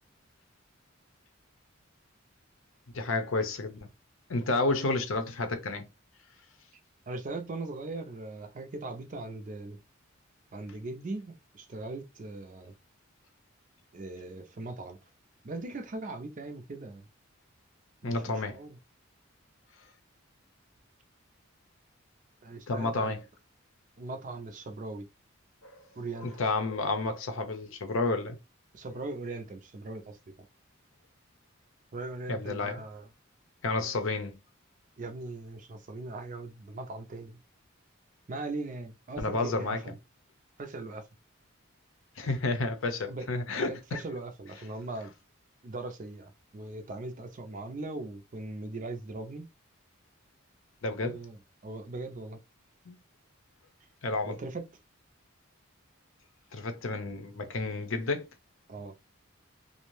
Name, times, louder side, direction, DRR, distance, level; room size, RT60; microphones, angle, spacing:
voice 1, 2.9-3.9 4.3-5.8 18.0-18.6 22.7-23.2 25.6-25.8 26.2-28.4 32.3-32.8 33.6-34.4 39.2-39.8 42.2-44.0 50.8-51.2 52.9-53.0 54.0-54.4 56.5-58.2, left 3 dB, 75° left, 0.6 m, -31 dB
voice 2, 7.1-9.8 10.5-12.7 13.9-15.0 15.4-17.0 18.0-18.8 22.4-23.2 24.0-25.1 25.9-26.4 28.7-30.2 31.9-33.1 35.0-37.4 38.3-40.0 40.6-41.1 43.1-45.1 45.6-49.5 51.0-52.4 54.2-54.7 58.7-58.9, right 2 dB, 40° right, 0.4 m, -40 dB
2.6 x 2.0 x 3.0 m
head